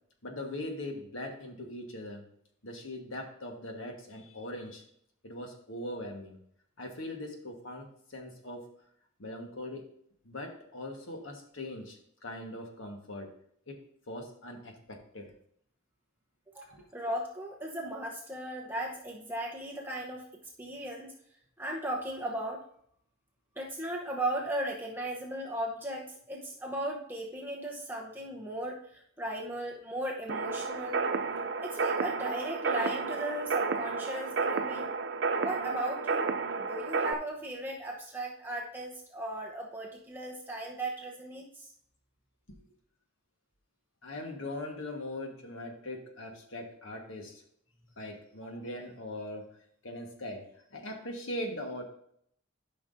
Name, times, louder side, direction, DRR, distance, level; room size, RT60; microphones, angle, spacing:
voice 1, 0.2-2.3 2.6-4.8 5.2-6.4 6.8-8.7 9.2-9.9 10.2-13.3 13.7-13.8 14.1-15.3 16.7-16.8 44.0-47.4 48.0-49.5 49.8-51.8, left 1 dB, 70° left, 3 dB, 1.4 m, -41 dB
voice 2, 16.5-20.2 20.6-21.2 21.6-22.6 23.6-31.1 31.6-34.9 35.4-36.3 36.5-41.6 48.4-48.5, right 1 dB, 10° right, -1 dB, 0.9 m, -37 dB
sound 1, 30.3-37.1, right 4 dB, 55° right, 0.5 m, -31 dB
12.5 x 5.8 x 2.7 m, 0.68 s
head